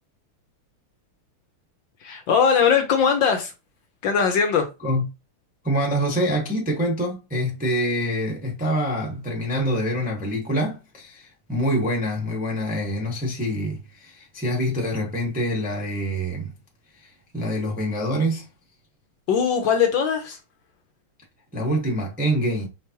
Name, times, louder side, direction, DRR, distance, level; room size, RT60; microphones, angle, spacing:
voice 1, 2.0-3.5 4.0-4.7 19.3-20.4, left 6 dB, 65° left, 1.4 m, -20 dB
voice 2, 5.6-16.5 17.0-18.5 21.5-22.7, equal, 5° right, 0.7 m, -25 dB
5.0 x 3.4 x 2.9 m
omnidirectional pair, 2.4 m